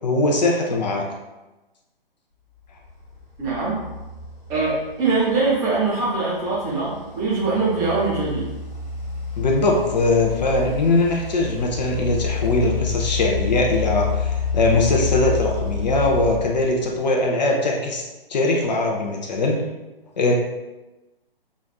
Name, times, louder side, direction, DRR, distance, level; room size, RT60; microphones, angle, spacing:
voice 1, 0.0-1.1 9.4-18.0 18.3-19.6 20.2-20.3, left 2 dB, 45° left, 0 dB, 0.6 m, -21 dB
sound 1, 2.8-17.3, left 5 dB, 30° left, 1.2 m, -29 dB
voice 2, 3.4-3.8 4.5-8.5, right 3 dB, 10° right, -7 dB, 0.6 m, -22 dB
5.1 x 2.4 x 2.2 m, 1.1 s
figure-of-eight pair, 130°, 29 cm